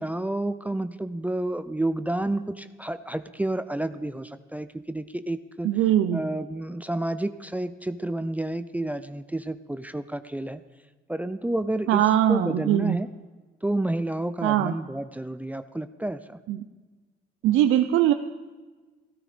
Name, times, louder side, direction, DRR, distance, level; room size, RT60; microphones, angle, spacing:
voice 1, 0.0-5.7 6.1-10.6 11.1-12.0 12.3-13.1 13.6-16.4, right 1 dB, 5° right, 11 dB, 0.6 m, -30 dB
voice 2, 5.6-6.2 11.9-13.0 14.4-14.7 16.5-16.6 17.4-18.1, right 11 dB, 90° right, 8 dB, 0.7 m, -21 dB
16.5 x 13.5 x 5.1 m, 1.3 s
cardioid pair, 90°, 20 cm